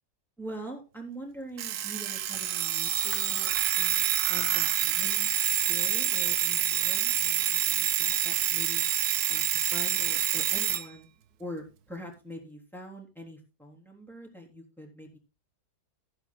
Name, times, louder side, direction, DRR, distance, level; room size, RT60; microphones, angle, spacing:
voice 1, 0.4-5.3 5.7-8.9 9.3-11.1 11.4-15.2, right 1 dB, ahead, 0 dB, 3.5 m, -44 dB
Alarm, 1.6-10.8, right 11 dB, 75° right, 1.3 m, -27 dB
15.0 x 12.5 x 2.2 m, 0.29 s
omnidirectional pair, 1.7 m